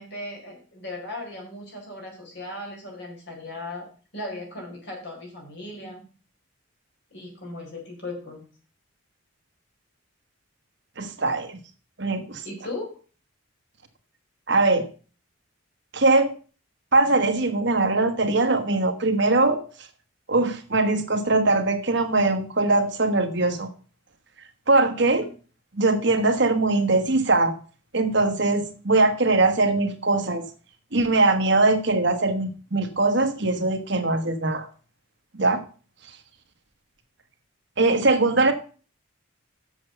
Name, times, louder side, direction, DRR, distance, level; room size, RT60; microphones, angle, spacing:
voice 1, 0.0-3.9 4.1-6.0 7.1-8.5 12.4-13.0, left 2 dB, 55° left, 0 dB, 4.5 m, -37 dB
voice 2, 11.0-11.6 12.0-12.4 14.5-14.9 15.9-16.3 16.9-19.6 20.3-23.7 24.7-25.3 25.7-27.5 27.9-30.4 30.9-34.7 35.3-35.6 37.8-38.5, right 2 dB, 55° right, 7 dB, 1.3 m, -21 dB
7.9 x 6.9 x 6.7 m, 0.38 s
head